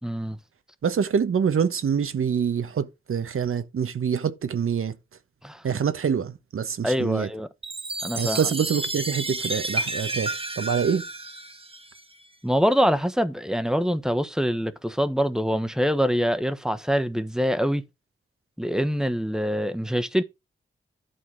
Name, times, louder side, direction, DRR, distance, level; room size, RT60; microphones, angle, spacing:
voice 1, 0.0-0.4 5.4-5.6 6.8-7.5 8.0-8.4 12.4-17.8 18.6-20.2, equal, 5° right, 1.2 m, -24 dB
voice 2, 0.8-4.9 5.6-7.3 8.2-11.0, right 7 dB, 85° right, 1.2 m, -25 dB
Chime, 7.6-12.2, right 2 dB, 25° right, 1.6 m, -31 dB
11.5 x 4.3 x 6.3 m
cardioid pair, 70°, 21 cm